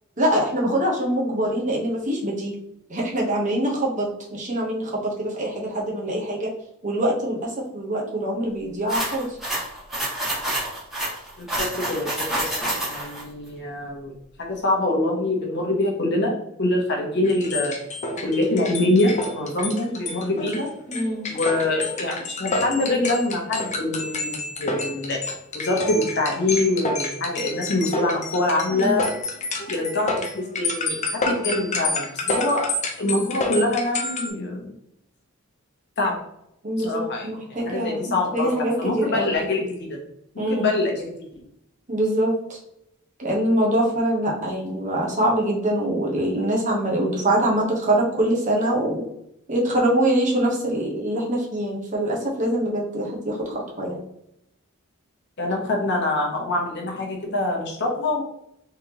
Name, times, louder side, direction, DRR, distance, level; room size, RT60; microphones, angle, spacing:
voice 1, 0.2-2.5 2.9-6.5 6.8-9.4 20.9-21.3 28.8-29.0 36.6-39.4 40.4-40.7 41.9-42.6 43.2-49.1 49.5-54.0, right 1 dB, 40° right, -3 dB, 1.1 m, -24 dB
sound 1, 8.9-13.2, right 1 dB, ahead, 1.5 m, -28 dB
voice 2, 11.4-12.4 12.8-16.3 16.6-17.7 18.2-20.7 21.3-25.2 25.5-29.0 29.7-34.7 36.0-36.2 36.8-37.3 37.7-38.5 38.8-40.0 40.3-41.1 55.4-58.2, left 2 dB, 55° left, 0 dB, 1.1 m, -24 dB
sound 2, 17.2-34.3, left 2 dB, 35° left, 0.6 m, -29 dB
3.8 x 3.5 x 2.9 m, 0.77 s
head